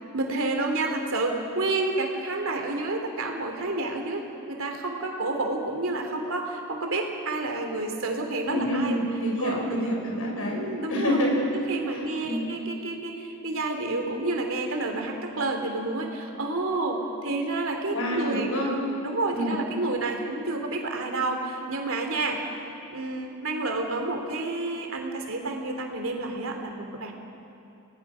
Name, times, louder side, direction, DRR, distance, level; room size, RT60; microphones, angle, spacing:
voice 1, 0.1-9.0 9.4-9.5 10.5-11.2 11.7-18.7 19.0-22.4 22.9-27.1, right 2 dB, 70° right, 3 dB, 3.2 m, -29 dB
voice 2, 8.4-10.6 10.9-11.5 11.9-12.4 17.9-18.7 19.3-19.5, equal, 75° left, -1 dB, 6.1 m, -27 dB
29.0 x 19.0 x 6.3 m, 2.8 s
head